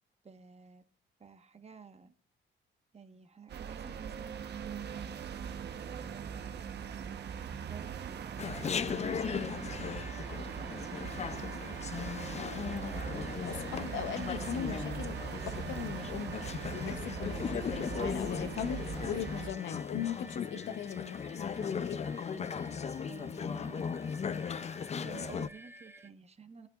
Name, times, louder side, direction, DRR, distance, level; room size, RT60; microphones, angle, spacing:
voice 1, 0.2-0.8 1.2-2.1 2.9-12.6 16.1-16.6 22.3-24.2 24.8-26.7, right 5 dB, 30° right, 1.3 m, -54 dB
sound 1, 3.5-19.5, right 7 dB, 55° right, 1.1 m, -41 dB
Chatter, 8.4-25.5, left 6 dB, 35° left, 0.5 m, -38 dB
sound 2, 9.0-26.1, right 2 dB, 10° right, 0.8 m, -53 dB
voice 2, 12.4-12.8 13.5-22.1, left 9 dB, 75° left, 0.9 m, -39 dB
18.0 x 9.0 x 2.5 m
cardioid pair, 90°, 20 cm